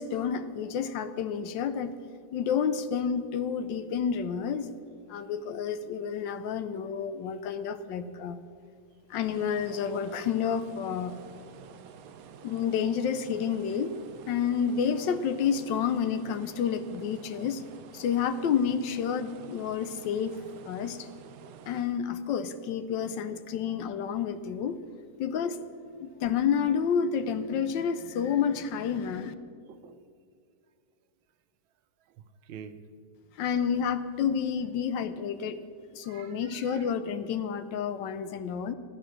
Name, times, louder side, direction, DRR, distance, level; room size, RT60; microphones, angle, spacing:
voice 1, 0.0-1.9 2.3-4.8 5.1-8.4 9.1-11.2 12.4-13.9 14.3-17.6 17.9-20.3 20.7-21.1 21.7-24.8 25.2-25.6 26.0-29.3 33.4-35.6 35.9-38.7, left 7 dB, 75° left, 12 dB, 1.3 m, -29 dB
sound 1, 9.1-22.0, right 8 dB, 70° right, 0.8 m, -49 dB
voice 2, 29.7-30.0 32.0-32.8 36.0-36.9, right 8 dB, 85° right, 10 dB, 1.5 m, -49 dB
13.5 x 10.0 x 6.3 m, 2.3 s
omnidirectional pair, 2.1 m